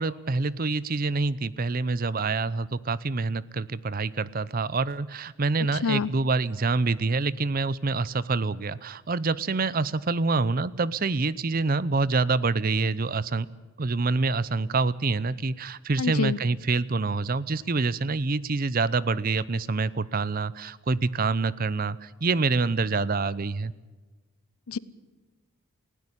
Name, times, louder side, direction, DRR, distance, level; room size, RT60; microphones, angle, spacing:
voice 1, 0.0-13.5 13.8-23.7, right 3 dB, 40° right, 19 dB, 0.6 m, -26 dB
voice 2, 16.0-16.4 24.7-24.8, left 5 dB, 85° left, 19 dB, 0.7 m, -26 dB
19.5 x 16.5 x 10.0 m, 1.2 s
head